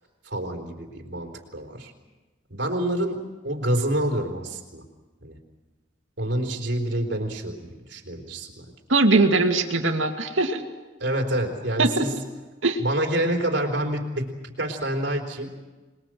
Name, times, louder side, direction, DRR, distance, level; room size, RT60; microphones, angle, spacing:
voice 1, 0.2-1.9 2.5-4.9 5.2-5.4 6.2-8.7 11.0-12.2 12.8-15.5, right 1 dB, 65° right, 3 dB, 4.0 m, -27 dB
voice 2, 8.9-10.6 11.8-12.0 12.6-12.8, right 3 dB, 90° right, 4 dB, 2.4 m, -21 dB
26.0 x 21.5 x 7.7 m, 1.2 s
head